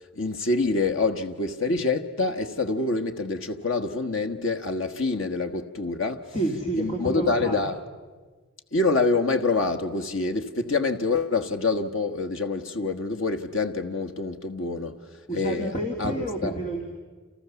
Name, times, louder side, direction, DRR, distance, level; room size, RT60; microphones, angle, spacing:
voice 1, 0.1-6.3 6.8-7.8 8.7-14.9 15.3-15.7 16.0-16.5, left 3 dB, 80° left, 1.5 m, -26 dB
voice 2, 6.3-7.7 15.3-16.8, right 2 dB, 35° left, 3.0 m, -29 dB
29.0 x 29.0 x 7.1 m
head